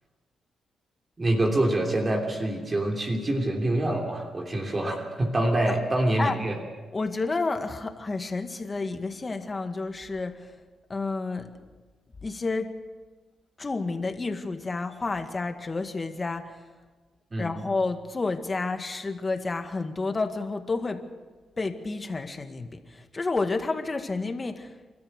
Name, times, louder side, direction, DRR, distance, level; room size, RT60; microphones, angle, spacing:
voice 1, 1.2-6.6 17.3-17.5, right 1 dB, 30° right, 1 dB, 3.1 m, -26 dB
voice 2, 6.9-10.5 10.9-11.5 12.2-12.7 13.6-16.7 17.4-21.0 21.6-24.8, left 3 dB, 30° left, 7 dB, 1.9 m, -30 dB
29.5 x 13.5 x 6.6 m, 1.3 s
cardioid pair, 90°, 0 cm